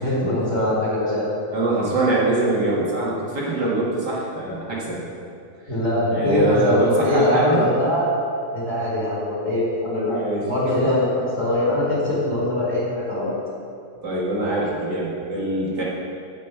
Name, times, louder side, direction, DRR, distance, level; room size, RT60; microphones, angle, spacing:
voice 1, 0.0-1.3 5.7-8.1 8.5-10.2 10.5-13.3, left 1 dB, 25° left, -6 dB, 2.6 m, -22 dB
voice 2, 1.5-5.0 6.1-7.6 10.0-10.5 10.8-10.9 14.0-15.8, right 2 dB, 40° right, -5 dB, 1.6 m, -23 dB
10.5 x 5.3 x 7.9 m, 2.4 s
omnidirectional pair, 4.1 m